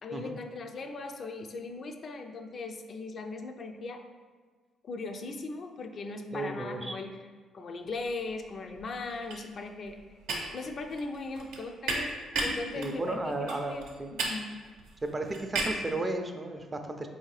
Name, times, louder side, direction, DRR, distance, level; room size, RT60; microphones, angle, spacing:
voice 1, 0.0-4.0 4.8-7.2 7.5-10.0 10.5-12.1 12.4-13.9 14.1-14.5, left 3 dB, 55° left, 5 dB, 0.3 m, -38 dB
voice 2, 6.3-7.0 12.8-14.1 15.0-17.1, right 2 dB, 30° right, 5 dB, 0.4 m, -34 dB
sound 1, 8.1-8.4 8.7-15.9, right 2 dB, 90° right, 0.7 m, -35 dB
4.5 x 2.7 x 3.1 m, 1.5 s
supercardioid pair, 65°, 0 cm